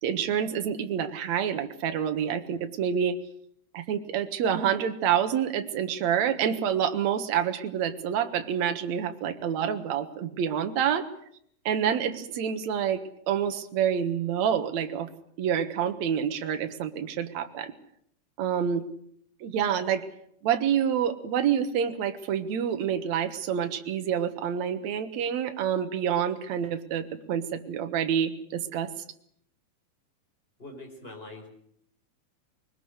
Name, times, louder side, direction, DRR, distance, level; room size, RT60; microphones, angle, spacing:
voice 1, 0.0-3.2 3.7-11.1 11.7-15.1 15.4-17.7 18.4-18.9 19.4-20.0 20.4-28.9, right 8 dB, 60° right, 8 dB, 2.4 m, -27 dB
voice 2, 30.6-31.5, left 2 dB, 15° left, 2 dB, 4.9 m, -43 dB
21.5 x 19.5 x 8.1 m, 0.69 s
omnidirectional pair, 4.1 m